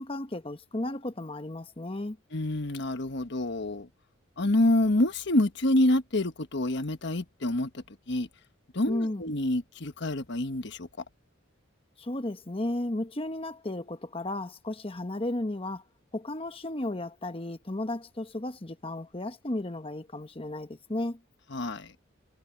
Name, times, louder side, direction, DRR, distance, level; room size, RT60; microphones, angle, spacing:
voice 1, 0.0-2.2 8.9-9.2 12.0-15.8 16.1-21.2, left 1 dB, 25° left, 1.1 m, -34 dB
voice 2, 2.3-3.9 4.4-8.3 8.7-10.9 21.5-21.9, left 1 dB, 60° left, 1.4 m, -27 dB
head